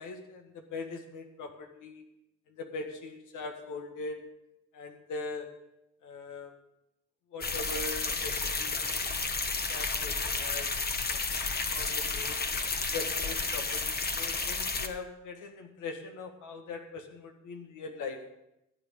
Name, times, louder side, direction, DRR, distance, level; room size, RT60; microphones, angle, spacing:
voice 1, 0.0-2.1 2.5-4.3 4.7-5.6 6.0-6.6 7.3-8.9 9.7-10.8 11.1-11.2 11.7-12.5 12.9-18.3, left 3 dB, 85° left, 5 dB, 1.7 m, -41 dB
sound 1, 7.4-14.9, left 4 dB, 30° left, 1.2 m, -32 dB
13.0 x 8.9 x 5.3 m, 0.88 s
cardioid pair, 90°, 30 cm